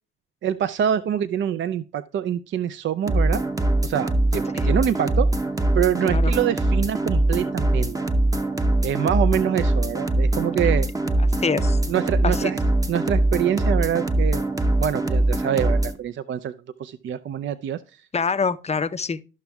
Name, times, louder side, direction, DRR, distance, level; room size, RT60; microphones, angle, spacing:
voice 1, 0.4-3.4 3.8-5.3 5.7-8.0 8.8-10.9 11.9-12.6 12.9-14.4 14.8-16.5 16.8-18.1, right 9 dB, 40° right, 0.4 m, -25 dB
sound 1, 3.1-15.9, right 1 dB, 10° right, 0.8 m, -22 dB
voice 2, 11.4-11.8 12.2-12.5 18.1-19.2, left 5 dB, 20° left, 0.6 m, -25 dB
13.0 x 5.9 x 2.3 m
hypercardioid pair, 50°, 29 cm